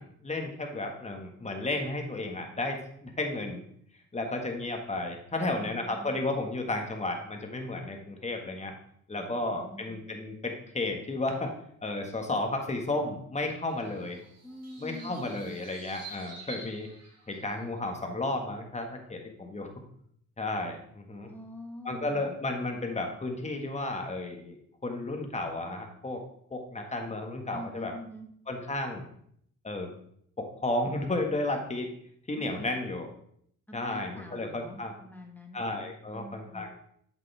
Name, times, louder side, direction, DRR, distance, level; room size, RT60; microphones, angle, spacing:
voice 1, 0.0-3.6 4.1-8.7 9.1-11.5 11.8-14.2 14.8-16.9 17.3-19.7 20.4-21.3 21.8-26.2 26.5-27.9 28.5-29.1 29.6-29.9 30.4-31.9 32.3-33.1 33.7-34.9 35.5-36.7, left 2 dB, 20° left, 3 dB, 1.8 m, -33 dB
voice 2, 5.3-6.2 9.2-10.0 14.4-15.6 21.2-22.4 27.5-28.3 32.4-32.7 33.7-35.6 36.1-36.7, left 1 dB, 5° left, 1 dB, 1.8 m, -45 dB
sound 1, 13.6-17.6, right 4 dB, 55° right, 3.0 m, -49 dB
8.0 x 7.1 x 3.5 m, 0.68 s
cardioid pair, 90°, 30 cm